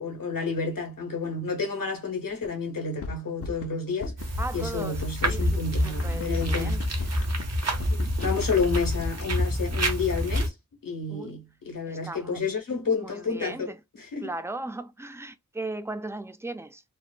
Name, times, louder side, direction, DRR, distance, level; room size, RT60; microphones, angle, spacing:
voice 1, 0.0-7.1 7.9-10.5 10.8-14.3, left 4 dB, 80° left, 1.3 m, -30 dB
sound 1, 2.4-2.5 2.8-3.7 4.0-4.5 4.8-9.6, left 3 dB, 45° left, 0.5 m, -36 dB
sound 2, 4.2-10.5, equal, 50° right, 0.8 m, -28 dB
voice 2, 4.4-5.6 5.8-6.9 11.1-11.4 11.9-12.4 13.0-13.8 14.2-16.8, right 2 dB, 10° right, 0.4 m, -37 dB
3.2 x 2.1 x 2.3 m
wide cardioid pair, 65°, 33 cm